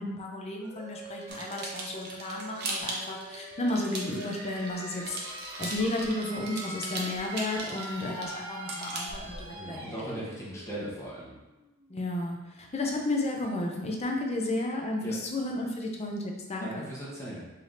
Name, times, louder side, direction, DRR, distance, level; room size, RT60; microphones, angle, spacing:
voice 1, 0.0-5.2 5.6-10.2 11.9-16.9, left 2 dB, 30° left, 1 dB, 0.5 m, -33 dB
sound 1, 0.6-12.1, right 1 dB, 75° right, 1.2 m, -43 dB
sound 2, 1.3-4.7 5.0-9.5, right 2 dB, 50° right, 0.7 m, -38 dB
voice 2, 9.5-11.4 15.0-15.1 16.6-17.5, right 1 dB, 15° left, -8 dB, 1.0 m, -39 dB
3.4 x 2.8 x 3.7 m, 1.1 s
head